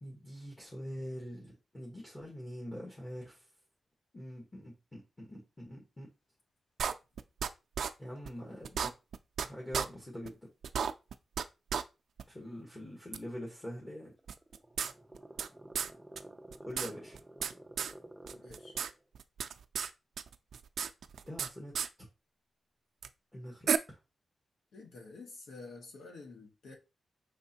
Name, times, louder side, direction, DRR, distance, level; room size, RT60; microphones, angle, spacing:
voice 1, 0.0-3.5 4.1-6.1 8.0-8.9 9.4-10.4 12.3-14.1 16.6-17.2 21.2-21.7 23.3-24.0, equal, 20° left, 1.2 m, -44 dB
sound 1, 6.8-7.5 7.8-7.9 8.3-8.4 8.6-9.5 9.7-9.9 10.3-10.4 10.6-11.4 11.7-11.8 12.2-12.3 13.1-13.2 14.3-15.5 15.7-15.9 16.2-16.3 16.5-17.5 17.8-17.9 18.3-18.9 19.1-19.9 20.2-21.5 21.7-21.9 23.0-23.1 23.7-23.8, right 7 dB, 85° right, 0.3 m, -33 dB
sound 2, 14.1-19.0, right 1 dB, 10° right, 0.4 m, -52 dB
voice 2, 18.3-18.8 24.7-26.8, left 3 dB, 90° left, 1.2 m, -49 dB
5.1 x 3.7 x 2.8 m
wide cardioid pair, 120°, 0 cm